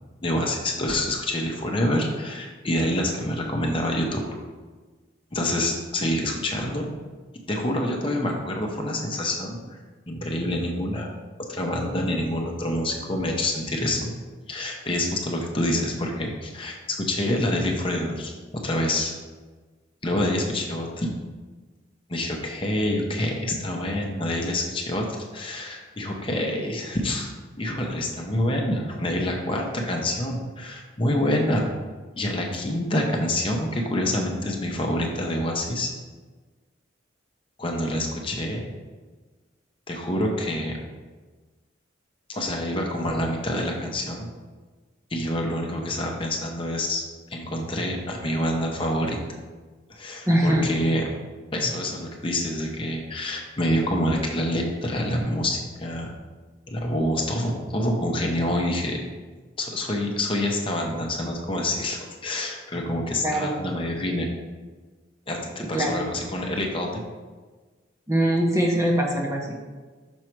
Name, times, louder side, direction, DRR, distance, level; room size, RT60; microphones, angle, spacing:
voice 1, 0.2-4.2 5.3-6.9 7.5-9.8 10.1-11.1 11.4-14.1 14.5-18.3 18.6-19.1 20.0-21.1 22.1-27.3 27.6-31.7 32.2-35.9 37.6-38.6 39.9-40.8 42.3-44.3 45.1-47.0 47.3-49.2 49.9-51.0 51.5-56.1 56.7-59.0 59.6-64.3 65.3-67.0, left 1 dB, 25° left, 1 dB, 0.8 m, -27 dB
voice 2, 50.3-50.7 51.5-51.7 63.2-63.6 65.6-66.0 68.1-69.5, right 1 dB, 15° right, -1 dB, 0.8 m, -23 dB
6.3 x 4.7 x 4.5 m, 1.4 s
head